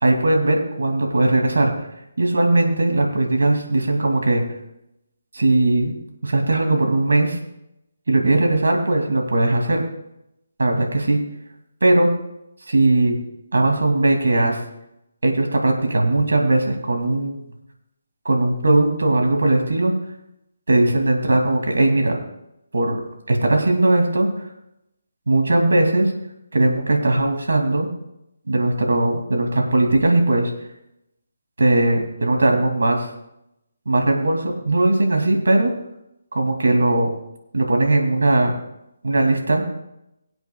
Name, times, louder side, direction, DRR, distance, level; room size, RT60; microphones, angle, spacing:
voice 1, 0.0-1.7 2.2-4.5 5.3-5.9 6.2-7.4 8.1-9.8 10.6-11.2 11.8-12.1 12.7-13.2 13.5-14.6 15.2-17.4 18.2-19.9 20.7-22.2 22.7-24.3 25.3-26.1 26.5-27.9 28.5-30.5 31.6-33.1 33.9-35.7 36.3-37.1 37.5-38.5 39.0-39.7, right 2 dB, 75° right, 2 dB, 2.6 m, -19 dB
23.5 x 8.0 x 2.3 m, 0.84 s
figure-of-eight pair, 150°, 0 cm